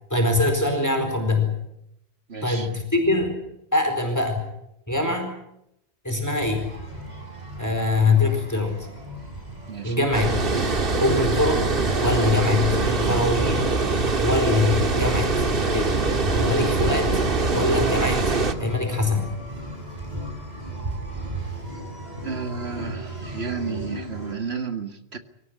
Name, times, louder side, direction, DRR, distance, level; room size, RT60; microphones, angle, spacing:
voice 1, 0.1-1.5 2.4-3.4 3.7-4.4 4.9-5.3 6.0-6.7 7.6-8.9 9.8-10.3 11.0-11.6 12.0-13.7 14.2-15.4 15.7-15.9 16.3-17.2 17.5-19.3, left 2 dB, 15° left, 4.4 m, -23 dB
voice 2, 2.3-2.7 9.7-10.1 22.2-25.2, right 5 dB, 80° right, 2.3 m, -32 dB
sound 1, 6.4-24.3, right 2 dB, 40° right, 7.1 m, -36 dB
Water, 10.1-18.5, right 3 dB, 60° right, 1.9 m, -23 dB
25.0 x 18.0 x 9.8 m
omnidirectional pair, 1.1 m